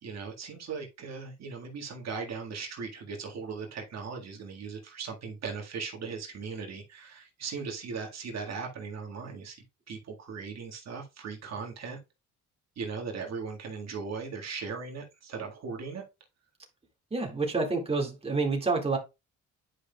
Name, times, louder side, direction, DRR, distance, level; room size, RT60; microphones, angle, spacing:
voice 1, 0.0-12.0 12.7-16.0, right 5 dB, 60° right, 1.7 m, -38 dB
voice 2, 17.1-19.0, right 3 dB, 20° right, 1.9 m, -28 dB
9.8 x 5.2 x 2.3 m
cardioid pair, 90°, 30 cm